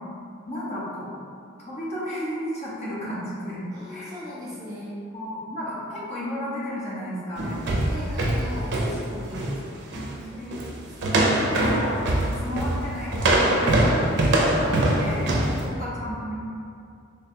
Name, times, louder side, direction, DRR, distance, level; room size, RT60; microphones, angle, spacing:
voice 1, 0.4-1.1 1.6-4.1 5.1-7.6 9.9-10.5 11.2-14.0 14.6-15.3 15.8-16.3, equal, 35° left, -7 dB, 0.7 m, -33 dB
voice 2, 3.7-4.9 5.7-5.8 7.8-9.8 10.3-10.7 14.7-16.1, left 1 dB, 20° right, -7 dB, 0.8 m, -39 dB
sound 1, 7.4-9.6 9.9-10.1 10.5-10.8 11.0-15.6, right 1 dB, 60° right, 0.5 m, -22 dB
3.3 x 2.3 x 4.2 m, 2.4 s
head